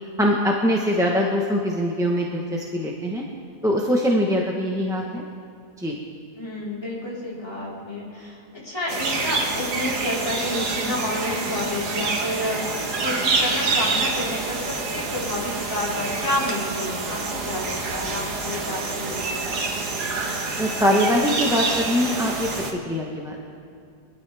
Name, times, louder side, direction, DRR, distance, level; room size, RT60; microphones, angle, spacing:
voice 1, 0.2-3.2 3.6-5.2 5.8-6.0 20.6-22.5 22.9-23.4, equal, 5° right, -2 dB, 0.9 m, -22 dB
voice 2, 6.3-19.6, left 1 dB, 15° left, -8 dB, 4.3 m, -30 dB
sound 1, 8.9-22.7, right 3 dB, 80° right, 2.0 m, -27 dB
23.5 x 13.0 x 3.5 m, 2.4 s
omnidirectional pair, 1.7 m